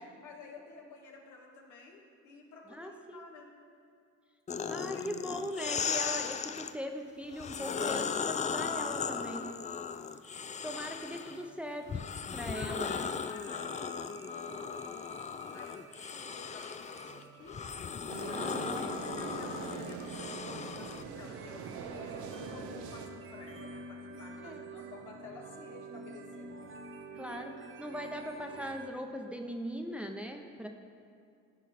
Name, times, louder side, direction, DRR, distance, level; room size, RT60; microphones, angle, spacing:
voice 1, 0.0-3.5 4.9-5.3 12.5-14.9 15.5-17.6 18.2-26.6, left 3 dB, 80° left, 0 dB, 1.6 m, -51 dB
voice 2, 2.7-3.2 4.7-9.5 10.6-12.0 12.3-13.0 18.3-18.9 24.4-24.6 27.1-30.7, equal, 5° right, 3 dB, 0.8 m, -40 dB
sound 1, 4.5-6.7 7.3-11.4 11.9-21.0, left 6 dB, 25° left, 0.4 m, -37 dB
sound 2, 11.2-28.9, right 3 dB, 40° right, 0.8 m, -50 dB
sound 3, 18.1-23.1, right 6 dB, 75° right, 0.8 m, -42 dB
14.0 x 4.9 x 4.2 m, 2.3 s
supercardioid pair, 75°, 31 cm